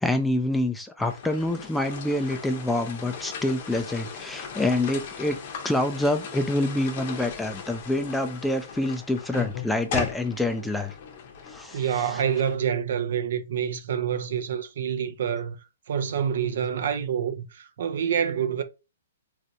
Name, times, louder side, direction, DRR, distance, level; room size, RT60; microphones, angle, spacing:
voice 1, 0.0-5.4 5.6-10.9 11.5-12.1, left 1 dB, 5° left, 0.3 m, -26 dB
sound 1, 1.0-12.6, left 6 dB, 45° left, 0.7 m, -38 dB
voice 2, 11.7-15.6 15.9-18.6, right 8 dB, 65° right, 0.5 m, -27 dB
3.2 x 2.6 x 2.7 m
hypercardioid pair, 150°, 0 cm